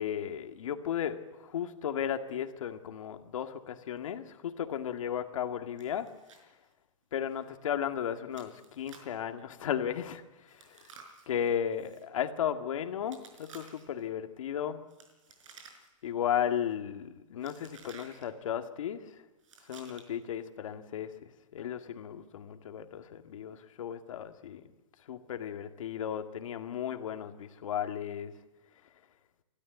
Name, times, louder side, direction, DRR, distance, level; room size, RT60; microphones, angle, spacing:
voice 1, 0.0-6.1 7.1-10.2 10.5-10.9 11.3-14.8 16.0-19.1 19.7-24.7 25.1-28.3, left 9 dB, 75° left, 7 dB, 2.0 m, -35 dB
Chewing mastication, 5.8-6.4 6.7-6.8 7.3-7.5 8.3-9.2 10.5-12.0 13.1-14.0 14.9-16.1 16.3-16.7 17.4-18.2 19.4-20.2, right 5 dB, 70° right, 5.4 m, -54 dB
29.5 x 13.0 x 9.4 m, 1.1 s
hypercardioid pair, 155°, 17 cm